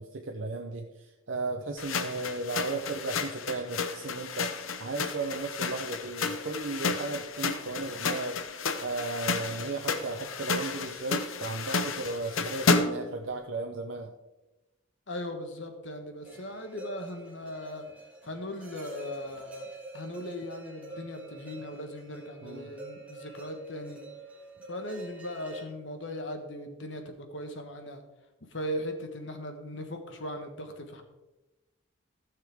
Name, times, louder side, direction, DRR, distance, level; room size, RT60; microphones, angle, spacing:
voice 1, 0.0-14.1 22.4-22.7, right 3 dB, 70° right, 2 dB, 0.8 m, -35 dB
sound 1, 1.8-13.1, left 4 dB, 90° left, 0.8 m, -32 dB
voice 2, 15.1-17.9 18.2-24.0 24.7-28.0 28.5-31.0, left 1 dB, 65° left, 5 dB, 1.4 m, -38 dB
sound 2, 16.2-25.6, right 2 dB, 5° right, 1.9 m, -46 dB
15.5 x 6.7 x 3.6 m, 1.1 s
head